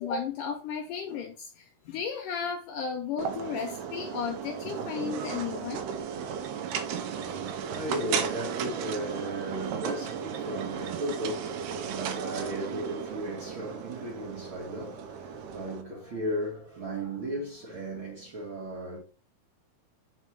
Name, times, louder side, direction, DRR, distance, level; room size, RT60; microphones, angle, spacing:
voice 1, 0.0-5.9 6.3-6.4, left 6 dB, 80° left, 2.0 m, -34 dB
sound 1, 3.2-15.8, right 7 dB, 80° right, 1.9 m, -35 dB
voice 2, 7.1-19.0, right 1 dB, 45° right, 1.7 m, -36 dB
5.0 x 4.5 x 4.4 m
omnidirectional pair, 4.5 m